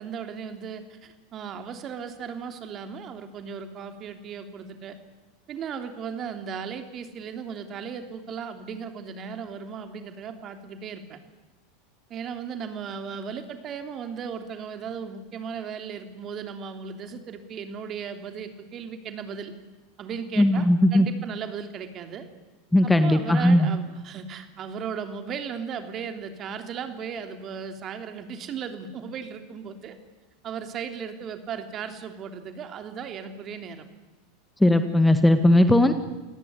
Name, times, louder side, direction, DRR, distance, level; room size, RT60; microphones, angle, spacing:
voice 1, 0.0-5.0 5.5-11.2 12.1-19.5 20.0-22.3 22.8-30.0 30.4-33.8, right 6 dB, 35° right, 7 dB, 3.2 m, -36 dB
voice 2, 20.4-21.1 22.7-23.7 34.6-35.9, left 1 dB, 5° left, 9 dB, 1.8 m, -18 dB
29.0 x 18.0 x 9.9 m, 1.2 s
figure-of-eight pair, 85°, 0 cm